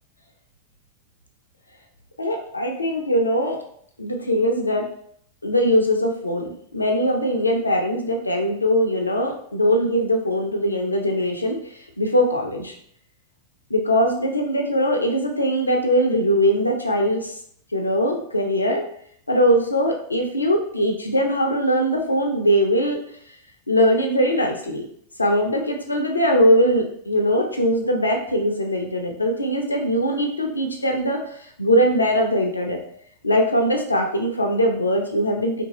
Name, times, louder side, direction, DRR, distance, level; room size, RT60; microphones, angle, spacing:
voice 1, 2.2-3.6 4.0-4.8 5.4-11.6 12.0-12.7 13.7-17.3 17.7-18.8 19.3-23.0 23.7-24.8 25.2-31.2 31.6-32.8 33.2-35.6, equal, 80° left, 2 dB, 0.4 m, -21 dB
2.8 x 2.6 x 2.8 m, 0.66 s
figure-of-eight pair, 90°, 0 cm